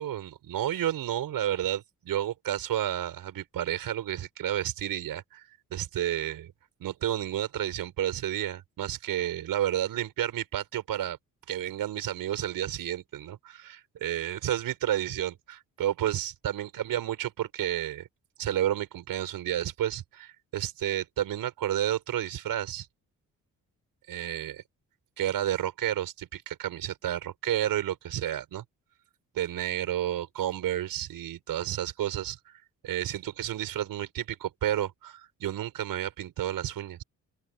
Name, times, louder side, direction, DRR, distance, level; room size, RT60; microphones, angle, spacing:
voice 1, 0.0-6.5 6.8-11.2 11.5-18.1 18.4-22.9 24.1-24.6 25.2-28.6 29.3-32.5 32.8-37.0, right 11 dB, 80° right, 6.5 m, -31 dB
open air
cardioid pair, 70°, 34 cm